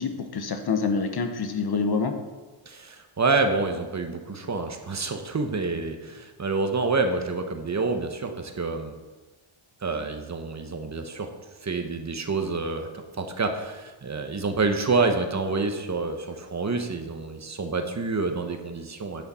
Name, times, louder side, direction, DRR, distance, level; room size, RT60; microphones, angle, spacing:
voice 1, 0.0-2.1, left 4 dB, 50° left, 7 dB, 1.0 m, -26 dB
voice 2, 2.7-8.9 9.8-11.3 11.6-12.9 13.2-19.2, right 3 dB, 35° right, 5 dB, 1.0 m, -27 dB
10.5 x 8.6 x 4.3 m, 1.2 s
wide cardioid pair, 140°, 49 cm